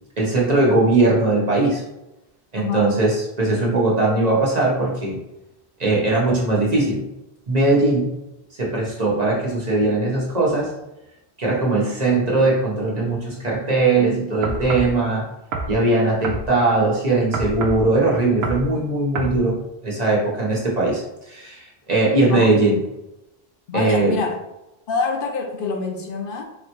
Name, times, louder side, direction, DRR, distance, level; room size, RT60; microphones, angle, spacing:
voice 1, 0.2-1.8 2.5-5.2 5.8-7.1 7.5-8.1 8.5-10.7 11.4-15.3 15.7-22.8 23.7-24.1, right 2 dB, 40° right, -3 dB, 1.0 m, -20 dB
voice 2, 2.6-2.9 22.2-22.5 23.7-24.4 24.9-26.4, left 4 dB, 65° left, 3 dB, 0.7 m, -26 dB
sound 1, 14.4-14.9 15.5-15.8 16.2-16.5 17.3-17.8 18.4-18.7 19.1-19.4, right 3 dB, 75° right, 0.8 m, -27 dB
4.1 x 3.2 x 2.9 m, 0.93 s
omnidirectional pair, 1.1 m